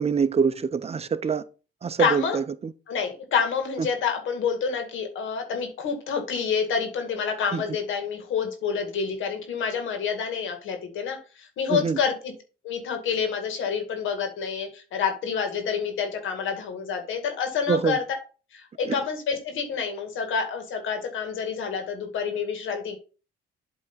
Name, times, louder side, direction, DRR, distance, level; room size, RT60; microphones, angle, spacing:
voice 1, 0.0-1.4 1.8-2.4 7.5-7.6 11.7-12.0 17.7-18.0 18.9-19.0, right 6 dB, 30° right, 0.6 m, -24 dB
voice 2, 2.0-2.4 2.9-12.3 12.6-18.0 18.5-23.0, left 6 dB, 80° left, 2.2 m, -28 dB
8.3 x 3.5 x 5.5 m
cardioid pair, 90°, 20 cm